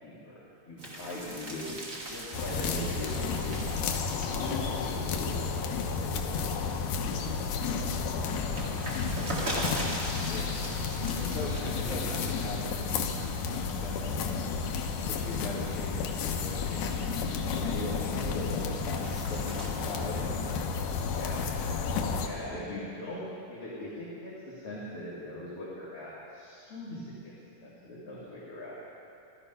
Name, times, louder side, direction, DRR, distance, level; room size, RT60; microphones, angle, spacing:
voice 1, 0.0-1.8 2.0-3.7 4.1-6.6 21.1-21.4 22.2-27.3 27.6-28.8, left 1 dB, 45° left, -9 dB, 2.9 m, -40 dB
sound 1, 0.8-6.7 7.1-13.0 13.3-13.8 14.4-17.7 18.1-19.7, right 1 dB, 30° right, 1.8 m, -41 dB
sound 2, 2.3-22.3, left 5 dB, 75° left, 2.3 m, -32 dB
voice 2, 7.6-8.0 9.3-9.9 10.3-10.6 11.1-14.4 15.1-20.3 22.5-22.8, left 2 dB, 25° left, -8 dB, 3.7 m, -40 dB
15.0 x 13.0 x 5.5 m, 2.6 s
omnidirectional pair, 3.8 m